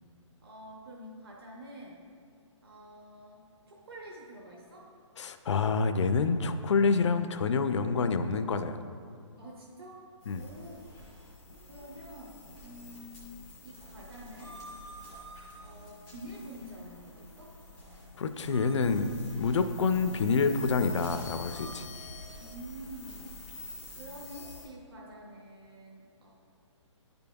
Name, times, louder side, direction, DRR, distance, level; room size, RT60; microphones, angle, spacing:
voice 1, 0.4-2.0 2.6-4.9 9.4-10.0 10.3-10.9 11.7-13.4 13.6-14.6 15.6-17.5 22.4-23.3 23.9-26.3, equal, 50° right, -2 dB, 0.8 m, -47 dB
voice 2, 5.2-8.8 10.3-10.5 18.2-21.9, left 4 dB, 65° left, 9 dB, 0.4 m, -27 dB
sound 1, 10.2-24.6, left 1 dB, ahead, 0.3 m, -47 dB
9.9 x 5.3 x 2.3 m, 2.2 s
hypercardioid pair, 175°, 16 cm